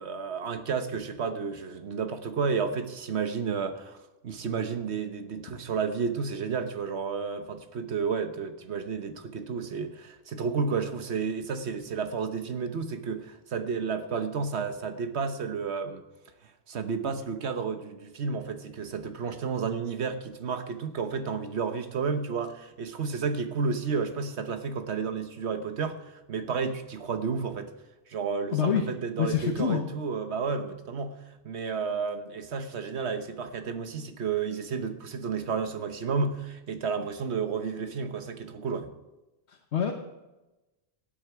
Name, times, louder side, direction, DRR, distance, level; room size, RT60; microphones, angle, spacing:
voice 1, 0.0-4.0 4.2-16.0 16.7-26.0 26.3-27.7 28.1-31.2 31.4-38.9, right 5 dB, 85° right, 1.3 m, -31 dB
voice 2, 28.5-28.8 29.2-29.9 39.5-39.9, left 8 dB, 85° left, 1.3 m, -26 dB
18.0 x 8.7 x 4.7 m
omnidirectional pair, 1.1 m